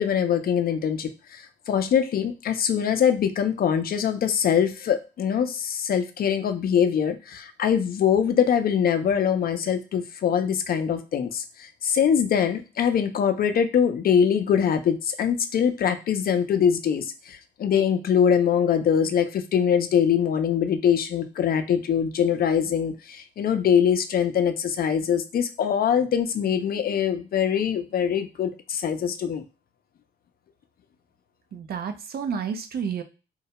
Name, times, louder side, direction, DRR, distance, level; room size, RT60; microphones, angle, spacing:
voice 1, 0.0-29.4, left 8 dB, 50° left, 8 dB, 0.4 m, -23 dB
voice 2, 31.5-33.0, right 6 dB, 50° right, 8 dB, 0.5 m, -30 dB
2.2 x 2.0 x 2.8 m, 0.32 s
cardioid pair, 90°, 20 cm